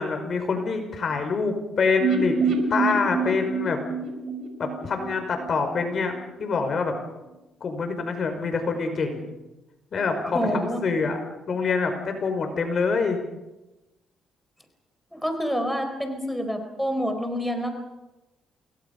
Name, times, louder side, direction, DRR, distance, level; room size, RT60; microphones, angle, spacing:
voice 1, 0.0-2.4 2.7-3.8 4.6-6.9 7.6-9.3 9.9-11.2 11.5-13.2, left 4 dB, 50° left, 6 dB, 5.4 m, -26 dB
sound 1, 2.0-5.9 6.1-6.2 6.5-6.6, right 4 dB, 60° right, 5.1 m, -27 dB
voice 2, 10.2-10.8 15.1-17.8, equal, ahead, 5 dB, 4.2 m, -28 dB
28.5 x 22.5 x 5.6 m, 1.0 s
cardioid pair, 90°, 0 cm